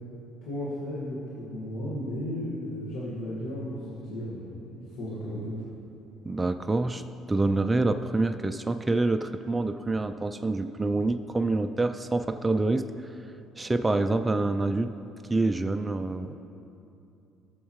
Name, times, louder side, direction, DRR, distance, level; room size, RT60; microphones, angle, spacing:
voice 1, 0.4-5.6, left 1 dB, 80° left, -7 dB, 1.8 m, -35 dB
voice 2, 6.2-7.0 7.3-12.9 13.6-14.9 15.3-16.4, right 2 dB, 15° right, 8 dB, 0.4 m, -26 dB
15.0 x 7.2 x 3.1 m, 2.7 s
cardioid pair, 95°, 0 cm